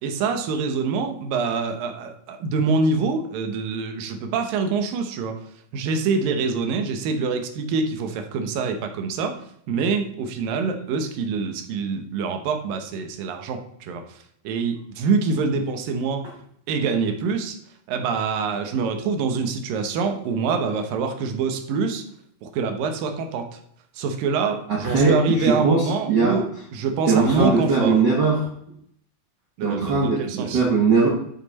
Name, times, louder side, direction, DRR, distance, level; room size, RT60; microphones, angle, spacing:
voice 1, 0.0-5.4 5.7-9.4 9.7-14.2 14.4-16.3 16.7-17.6 17.9-22.0 22.4-23.6 23.9-26.5 26.7-28.0 29.6-30.6, right 4 dB, 80° right, 6 dB, 2.7 m, -25 dB
voice 2, 24.7-26.4 27.1-28.5 29.6-31.1, right 4 dB, 60° right, -2 dB, 1.1 m, -20 dB
11.5 x 5.9 x 4.2 m, 0.69 s
omnidirectional pair, 4.1 m